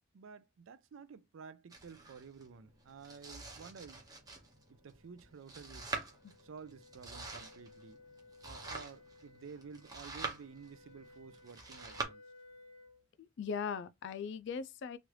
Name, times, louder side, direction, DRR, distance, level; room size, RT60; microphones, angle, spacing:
voice 1, 0.1-4.0 4.7-5.9 6.4-8.0 8.4-12.2, right 5 dB, 70° right, 0.4 m, -52 dB
Domestic sounds home sounds, 1.7-12.1, right 3 dB, 20° right, 0.7 m, -46 dB
sound 1, 3.1-13.0, left 2 dB, 85° left, 0.8 m, -61 dB
voice 2, 13.2-15.0, left 6 dB, 60° left, 0.4 m, -39 dB
3.1 x 2.4 x 3.0 m
head